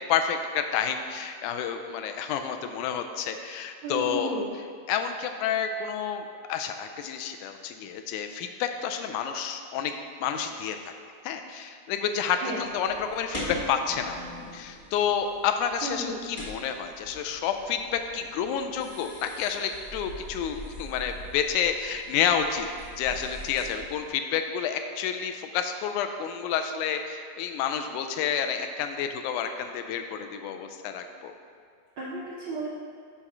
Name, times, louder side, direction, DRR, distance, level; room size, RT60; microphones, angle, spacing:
voice 1, 0.1-4.4 4.9-10.9 11.2-14.2 14.5-22.7 23.0-31.3, left 8 dB, 90° left, 6 dB, 2.0 m, -29 dB
voice 2, 3.8-4.5 12.4-12.7 15.8-16.1 32.0-32.7, right 2 dB, 75° right, -6 dB, 1.1 m, -33 dB
sound 1, 12.6-24.1, left 1 dB, 25° left, 0.8 m, -42 dB
6.9 x 4.2 x 5.8 m, 2.1 s
omnidirectional pair, 3.4 m